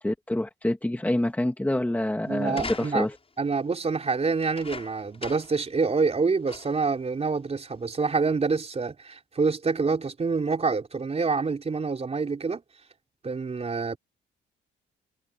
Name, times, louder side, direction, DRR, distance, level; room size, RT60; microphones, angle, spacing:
voice 1, 0.0-3.2, left 1 dB, 10° left, 2.6 m, -27 dB
voice 2, 2.3-3.1 3.4-12.6 13.2-14.0, right 4 dB, 30° right, 3.9 m, -27 dB
sound 1, 2.5-3.3 4.4-5.6 6.0-6.1 6.5-6.9 7.7-7.8, left 4 dB, 30° left, 7.8 m, -40 dB
cardioid pair, 90°, 20 cm